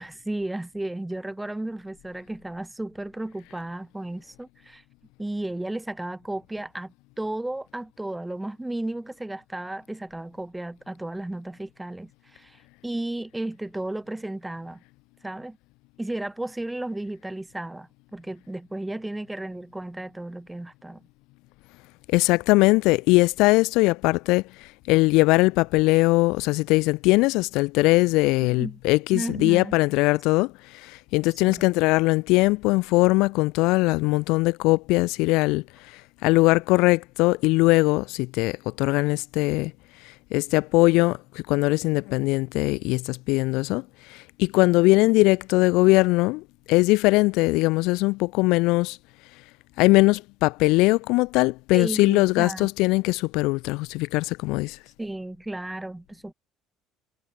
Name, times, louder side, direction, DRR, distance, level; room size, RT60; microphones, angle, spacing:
voice 1, 0.0-4.8 5.2-14.8 15.2-15.6 16.0-21.0 28.4-28.8 29.1-29.8 31.4-31.6 51.7-52.7 55.0-56.3, right 1 dB, 10° right, 2.1 m, -34 dB
voice 2, 22.1-39.7 40.0-49.0 49.8-54.8, left 23 dB, 65° left, 0.4 m, -21 dB
hypercardioid pair, 65°, 0 cm